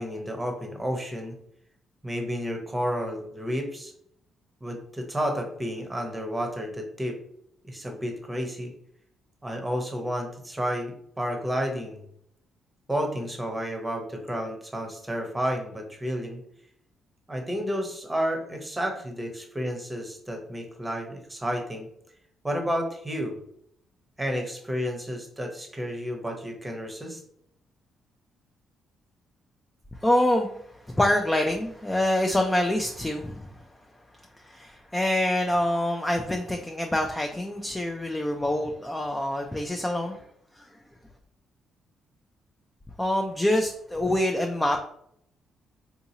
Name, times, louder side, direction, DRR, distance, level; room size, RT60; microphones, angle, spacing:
voice 1, 0.0-1.3 2.0-3.9 4.6-7.2 7.6-8.7 9.4-12.0 12.9-16.4 17.3-21.9 22.4-23.4 24.2-27.2, equal, 10° right, 3 dB, 0.8 m, -31 dB
voice 2, 30.0-30.6 30.9-33.5 34.4-40.2 40.6-40.7 43.0-44.8, left 1 dB, 10° left, 3 dB, 0.4 m, -26 dB
3.6 x 2.8 x 2.7 m, 0.69 s
cardioid pair, 90°, 0 cm